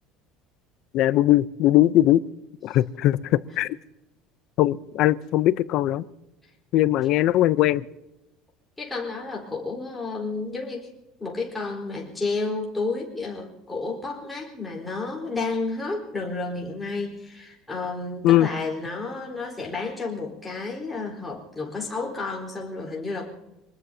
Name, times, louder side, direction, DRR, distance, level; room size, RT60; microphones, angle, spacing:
voice 1, 0.9-2.2 2.6-3.8 4.6-6.0 6.7-7.9 18.2-18.5, left 14 dB, 50° left, 16 dB, 0.5 m, -20 dB
voice 2, 8.8-10.9 11.2-23.3, left 3 dB, 10° left, -3 dB, 4.1 m, -31 dB
25.5 x 20.5 x 2.8 m, 0.96 s
cardioid pair, 160°, 0 cm